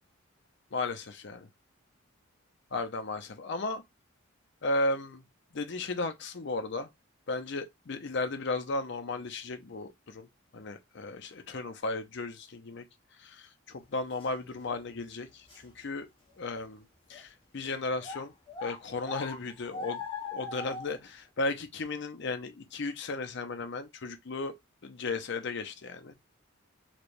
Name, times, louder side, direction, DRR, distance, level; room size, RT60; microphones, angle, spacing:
voice 1, 0.7-1.5 2.7-3.8 4.6-5.2 5.5-6.9 7.3-10.3 10.5-12.8 13.2-16.1 16.4-16.8 17.1-18.3 18.6-20.0 20.3-24.5 24.8-26.1, left 2 dB, 55° left, 0.6 m, -35 dB
sound 1, 14.2-14.3 14.8-14.9 15.5-15.7 16.3-16.4 17.1-17.2 18.0-21.0, left 4 dB, 25° left, 1.0 m, -40 dB
3.3 x 2.9 x 2.5 m
head